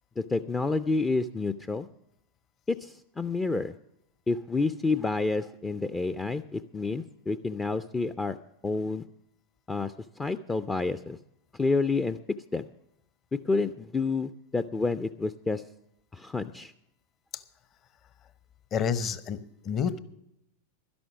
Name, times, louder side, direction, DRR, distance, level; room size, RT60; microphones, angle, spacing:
voice 1, 0.2-1.9 2.7-3.7 4.3-8.4 8.6-9.0 9.7-11.2 11.6-12.2 12.5-12.7 13.5-15.6 16.1-16.7, left 3 dB, 15° left, 13 dB, 0.4 m, -29 dB
voice 2, 18.7-20.0, left 7 dB, 30° left, 14 dB, 0.8 m, -29 dB
12.5 x 11.0 x 5.9 m, 0.79 s
figure-of-eight pair, 90°, 0 cm